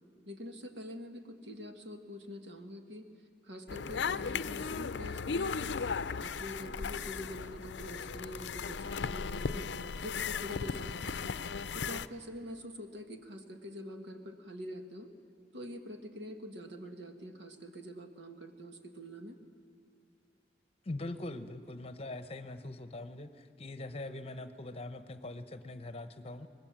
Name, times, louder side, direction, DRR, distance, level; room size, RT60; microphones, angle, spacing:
voice 1, 0.3-3.1 3.4-5.8 6.1-9.7 10.0-11.4 11.7-15.1 15.5-19.4, left 1 dB, 85° right, 5 dB, 1.9 m, -45 dB
sound 1, 3.7-12.1, left 5 dB, 85° left, 0.5 m, -36 dB
voice 2, 20.8-26.5, left 2 dB, 35° left, 11 dB, 1.0 m, -42 dB
24.5 x 20.0 x 7.5 m, 2.6 s
head